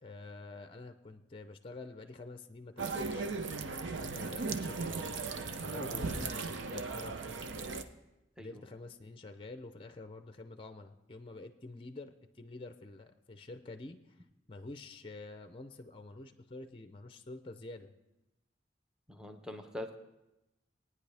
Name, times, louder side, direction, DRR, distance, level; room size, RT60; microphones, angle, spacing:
voice 1, 0.0-3.3 3.6-7.4 8.4-14.2 14.5-17.9, left 2 dB, 30° left, 9 dB, 0.5 m, -48 dB
sound 1, 2.8-7.8, right 4 dB, 85° right, 0.7 m, -37 dB
voice 2, 19.1-19.9, left 1 dB, 5° right, 4 dB, 0.8 m, -43 dB
19.0 x 9.5 x 3.4 m, 0.96 s
head